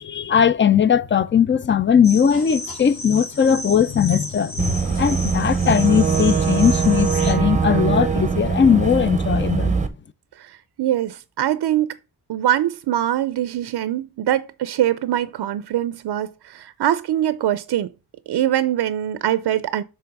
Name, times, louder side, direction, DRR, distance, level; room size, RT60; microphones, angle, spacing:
voice 1, 0.0-9.8, left 8 dB, 30° left, 0.4 m, -19 dB
sound 1, 2.0-7.3, left 1 dB, 60° left, 3.2 m, -33 dB
Boat Water vehicle / Engine, 4.6-9.9, right 5 dB, 20° right, 0.7 m, -21 dB
voice 2, 10.4-12.0 12.3-17.9 18.3-19.8, right 12 dB, 80° right, 0.5 m, -23 dB
6.8 x 3.5 x 5.2 m
wide cardioid pair, 150°, 39 cm